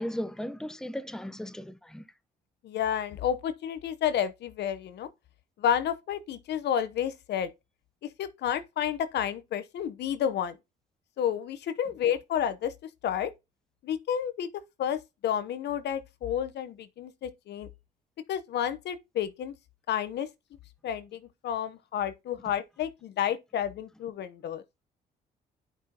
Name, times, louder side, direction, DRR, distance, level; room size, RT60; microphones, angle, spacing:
voice 1, 0.0-2.1, equal, 5° left, 0.9 m, -36 dB
voice 2, 2.6-5.1 5.6-7.5 8.0-10.6 11.2-12.7 13.0-13.3 13.8-14.5 14.8-17.7 18.3-19.5 19.9-20.3 20.8-24.6, left 9 dB, 70° left, 0.9 m, -30 dB
10.5 x 5.4 x 2.9 m
supercardioid pair, 65°, 18 cm